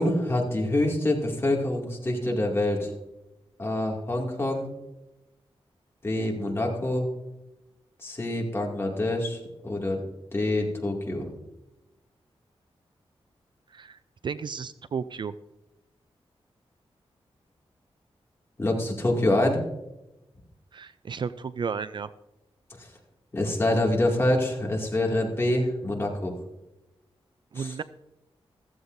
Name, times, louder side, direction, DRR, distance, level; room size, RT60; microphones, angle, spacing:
voice 1, 0.0-2.9 3.6-4.7 6.0-7.1 8.0-10.0 10.3-11.3 18.6-19.6 22.8-22.9 23.3-26.4 27.6-27.7, left 1 dB, 25° left, -1 dB, 2.3 m, -26 dB
voice 2, 13.7-15.3 20.7-22.1 27.5-27.8, right 6 dB, 50° right, 14 dB, 0.4 m, -33 dB
15.0 x 14.5 x 2.6 m, 0.96 s
wide cardioid pair, 160°, 10 cm